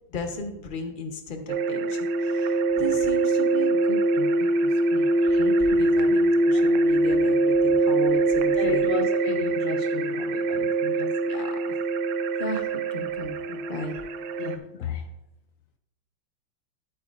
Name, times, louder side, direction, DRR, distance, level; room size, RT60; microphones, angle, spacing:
voice 1, 0.1-8.9 11.3-11.8 12.4-14.0, left 2 dB, 40° left, 0.8 m, -36 dB
sound 1, 1.5-14.6, right 2 dB, 75° right, 1.3 m, -23 dB
voice 2, 8.5-11.2 14.4-15.1, left 8 dB, 85° left, 0.7 m, -33 dB
12.5 x 8.1 x 2.5 m
omnidirectional pair, 2.1 m